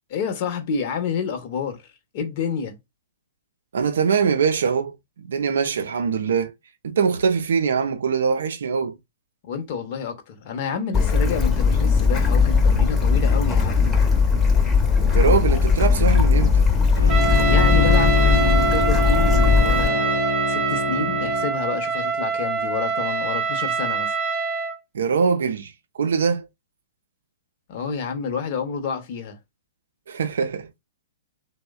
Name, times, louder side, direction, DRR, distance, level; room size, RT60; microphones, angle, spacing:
voice 1, 0.1-1.8 2.1-2.8 9.5-13.9 17.5-24.2 27.7-29.4, left 6 dB, 45° left, 0.7 m, -29 dB
voice 2, 3.7-6.5 6.8-9.0 15.1-16.7 24.9-26.5 30.1-30.7, right 6 dB, 65° right, 0.4 m, -22 dB
Bird / Stream, 10.9-19.9, left 5 dB, 15° left, 0.7 m, -18 dB
Bowed string instrument, 17.0-21.5, left 2 dB, 85° left, 0.8 m, -25 dB
Trumpet, 17.1-24.8, right 5 dB, 30° right, 0.6 m, -25 dB
3.1 x 2.1 x 2.3 m
figure-of-eight pair, 115°, 0 cm